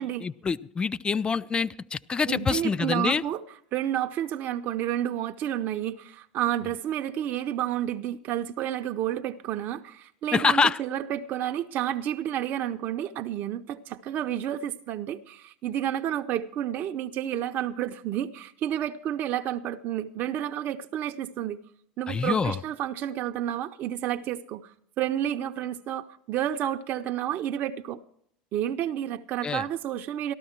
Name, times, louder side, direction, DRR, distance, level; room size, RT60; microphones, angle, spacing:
voice 1, 0.0-3.2 10.3-10.8 22.1-22.6 29.4-29.6, left 5 dB, 20° left, 18 dB, 0.4 m, -26 dB
voice 2, 2.3-3.4 3.7-21.6 22.0-28.0 28.5-30.3, right 11 dB, 50° right, 6 dB, 0.6 m, -30 dB
13.5 x 12.5 x 4.4 m, 0.68 s
hypercardioid pair, 95°, 4 cm